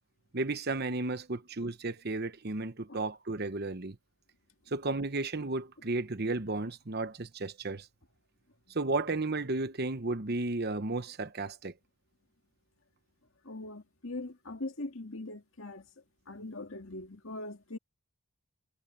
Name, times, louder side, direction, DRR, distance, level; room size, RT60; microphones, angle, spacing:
voice 1, 0.3-4.0 4.7-7.9 8.7-11.7, right 2 dB, 45° right, 1.0 m, -33 dB
voice 2, 13.5-15.8 16.3-17.8, left 2 dB, 60° left, 2.2 m, -41 dB
head